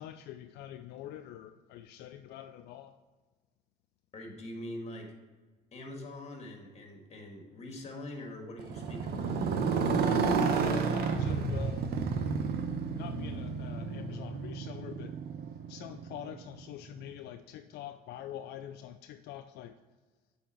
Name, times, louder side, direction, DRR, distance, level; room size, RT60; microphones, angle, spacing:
voice 1, 0.0-2.9 10.0-11.9 13.0-15.1 15.7-19.7, left 11 dB, 80° left, 8 dB, 0.4 m, -45 dB
voice 2, 4.1-5.1 5.7-9.3, left 1 dB, 40° left, 2 dB, 1.7 m, -43 dB
Motorcycle, 8.6-16.6, right 5 dB, 70° right, 0.8 m, -31 dB
8.5 x 4.1 x 4.4 m, 1.3 s
cardioid pair, 110°, 17 cm